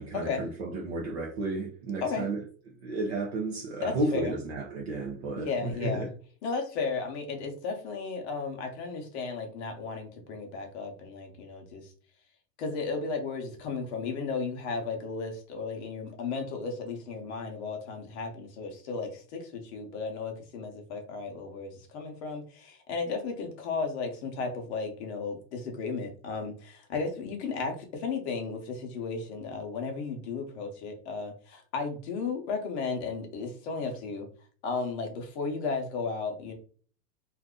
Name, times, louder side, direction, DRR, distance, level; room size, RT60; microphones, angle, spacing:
voice 1, 0.0-2.4 2.8-6.1, right 2 dB, 40° right, 0.6 m, -32 dB
voice 2, 3.8-4.4 5.4-6.1 6.4-11.9 12.6-34.3 34.6-36.5, left 4 dB, 40° left, 0.8 m, -34 dB
2.6 x 2.4 x 3.6 m
supercardioid pair, 175°, 49 cm